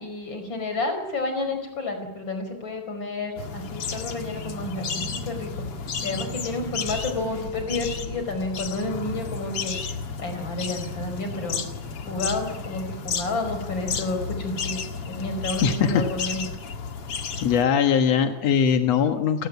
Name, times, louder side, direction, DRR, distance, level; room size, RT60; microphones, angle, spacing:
voice 1, 0.0-5.5 6.0-9.8 10.2-11.6 12.1-14.8 15.1-16.5, left 2 dB, 25° left, 7 dB, 5.4 m, -30 dB
sound 1, 3.4-17.6, left 5 dB, 50° left, 1.8 m, -32 dB
voice 2, 15.6-16.1 17.4-19.5, left 7 dB, 70° left, 6 dB, 1.6 m, -21 dB
29.5 x 18.5 x 9.5 m, 1.1 s
omnidirectional pair, 5.1 m